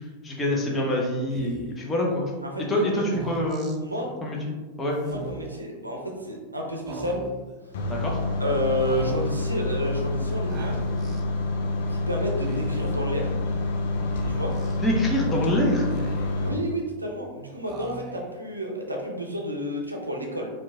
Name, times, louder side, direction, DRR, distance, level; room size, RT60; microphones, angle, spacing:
voice 1, 0.2-2.3 2.7-3.7 4.2-5.0 7.9-8.2 14.8-15.8, left 1 dB, 15° left, -2 dB, 0.8 m, -25 dB
Speech, 1.3-1.8 3.0-3.8 5.0-5.6 6.8-7.5 8.8-9.4 10.5-11.2 12.3-12.9 14.1-14.8 15.7-16.5 17.7-18.4, right 5 dB, 35° right, 0.4 m, -40 dB
voice 2, 2.4-3.0 3.8-4.1 5.0-7.2 7.6-7.7 8.4-10.8 11.9-13.3 14.3-14.5 16.4-20.5, equal, 80° right, 0 dB, 0.6 m, -30 dB
sound 1, 7.7-16.5, left 2 dB, 55° left, 0.5 m, -27 dB
4.5 x 2.4 x 2.7 m, 1.3 s
figure-of-eight pair, 90°, 0 cm